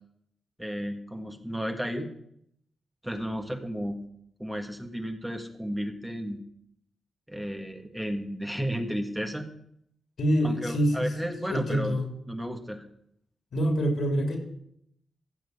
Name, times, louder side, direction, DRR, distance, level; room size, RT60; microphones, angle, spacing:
voice 1, 0.6-2.1 3.0-4.0 4.4-6.4 7.3-9.5 10.4-12.0 12.3-12.8, equal, 5° right, 4 dB, 1.6 m, -33 dB
voice 2, 10.2-11.1 11.5-12.1 13.5-14.4, equal, 70° left, 3 dB, 3.5 m, -25 dB
15.5 x 6.3 x 8.2 m, 0.72 s
cardioid pair, 80°, 0 cm